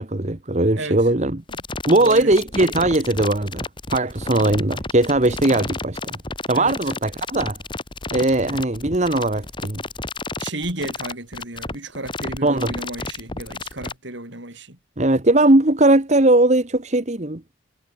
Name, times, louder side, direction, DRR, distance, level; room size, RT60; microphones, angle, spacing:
voice 1, 0.0-1.4 1.9-6.2 6.5-7.6 8.1-9.8 12.4-12.7 15.0-17.5, right 2 dB, 35° right, 1.3 m, -19 dB
sound 1, 1.5-13.9, left 3 dB, 25° left, 2.5 m, -31 dB
voice 2, 2.0-2.3 6.5-6.8 10.4-14.8, right 2 dB, 60° right, 6.2 m, -33 dB
head